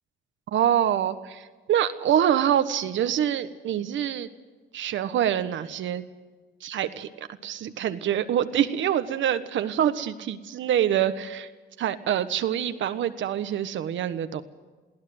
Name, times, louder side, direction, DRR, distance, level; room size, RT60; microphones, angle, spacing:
voice 1, 0.5-4.3 4.7-6.0 6.6-11.5 11.8-14.4, right 10 dB, 75° right, 10 dB, 1.4 m, -25 dB
22.5 x 16.5 x 7.9 m, 1.4 s
cardioid pair, 90°, 20 cm